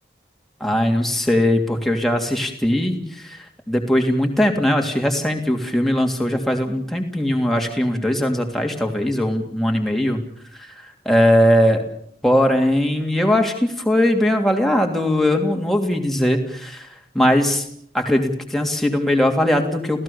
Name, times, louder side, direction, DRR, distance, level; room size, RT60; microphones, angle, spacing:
voice 1, 0.6-10.2 10.6-11.8 12.2-16.9 17.1-17.7 17.9-20.0, left 1 dB, ahead, 2 dB, 3.0 m, -20 dB
30.0 x 17.0 x 7.1 m, 0.65 s
head